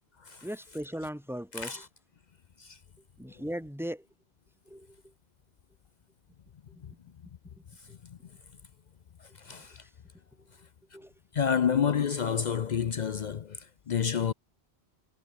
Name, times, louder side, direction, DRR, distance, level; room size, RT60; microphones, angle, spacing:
voice 1, 0.4-1.9 3.2-4.1 4.7-5.1 6.9-7.0 9.5-9.7 10.9-11.1, equal, ahead, 4.5 m, -38 dB
voice 2, 1.5-1.9 2.6-2.8 3.2-3.3 6.8-6.9 7.8-8.4 9.2-9.9 11.3-14.3, left 7 dB, 50° left, 0.6 m, -30 dB
omnidirectional pair, 1.1 m